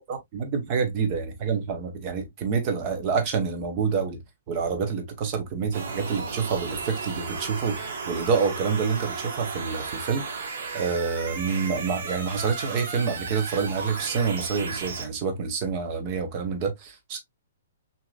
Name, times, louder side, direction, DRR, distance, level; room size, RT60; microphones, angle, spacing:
voice 1, 0.1-4.2 4.5-10.2 10.7-17.2, right 5 dB, 20° right, 0.9 m, -27 dB
sound 1, 5.7-15.1, right 4 dB, 50° right, 1.6 m, -34 dB
6.0 x 2.9 x 2.3 m
hypercardioid pair, 180°, 0 cm